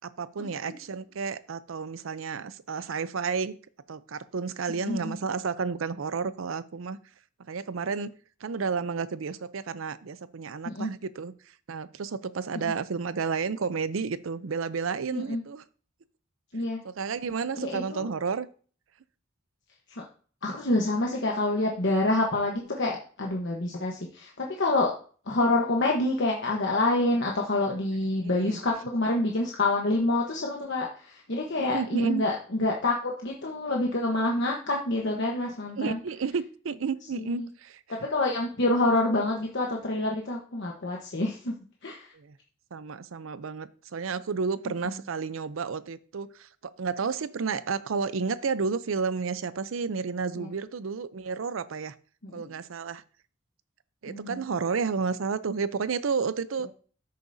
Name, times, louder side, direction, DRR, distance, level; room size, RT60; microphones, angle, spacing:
voice 1, 0.0-3.5 3.9-7.0 7.5-8.1 8.4-15.6 16.8-18.5 28.2-28.6 31.6-32.2 35.8-37.8 42.2-42.3 42.7-51.9 52.3-53.0 54.0-56.7, right 5 dB, 80° right, 0.5 m, -31 dB
voice 2, 4.7-5.2 10.6-10.9 12.5-12.7 15.1-15.4 16.5-16.8 17.6-18.1 19.9-20.0 20.4-24.9 25.2-36.0 37.2-37.5 37.9-41.5 41.8-42.1 44.8-45.0 50.3-50.5 52.2-52.4 54.1-54.4, left 2 dB, 60° left, 1.1 m, -27 dB
13.0 x 6.7 x 2.7 m
head